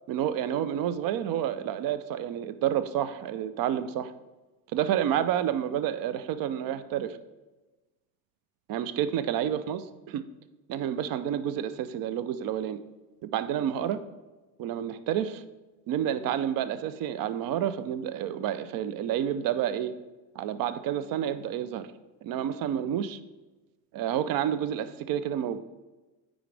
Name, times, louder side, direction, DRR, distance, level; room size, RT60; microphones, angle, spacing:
voice 1, 0.1-4.1 4.7-7.2 8.7-9.8 10.1-10.2 10.7-12.8 13.2-14.0 14.6-15.4 15.9-19.9 20.4-21.9 22.2-23.2 23.9-25.6, right 10 dB, 55° right, 13 dB, 0.6 m, -29 dB
8.7 x 5.1 x 3.3 m, 1.1 s
supercardioid pair, 100°, 41 cm